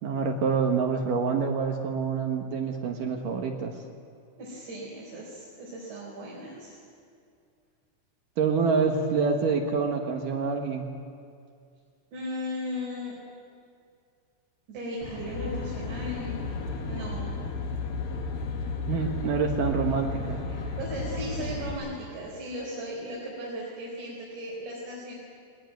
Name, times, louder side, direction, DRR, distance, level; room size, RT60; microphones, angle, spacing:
voice 1, 0.0-3.8 8.4-10.9 18.9-20.4, right 5 dB, 65° right, 3 dB, 2.5 m, -27 dB
voice 2, 4.4-6.8 12.1-13.2 14.7-16.4 16.8-17.3 20.5-25.2, equal, 80° right, -4 dB, 6.5 m, -37 dB
Aircraft, 15.0-21.7, left 3 dB, 60° left, 3.8 m, -33 dB
21.0 x 18.5 x 9.4 m, 2.3 s
omnidirectional pair, 4.9 m